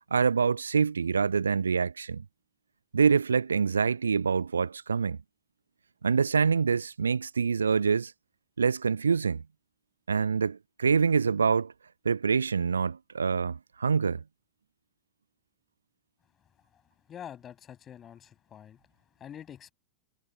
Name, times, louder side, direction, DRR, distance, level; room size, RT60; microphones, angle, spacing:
voice 1, 0.1-2.2 2.9-5.2 6.0-8.1 8.6-9.4 10.1-11.7 12.0-14.2, right 5 dB, 75° right, 0.6 m, -25 dB
voice 2, 17.1-18.8 19.2-19.7, left 9 dB, 25° left, 5.8 m, -46 dB
figure-of-eight pair, 90°, 0 cm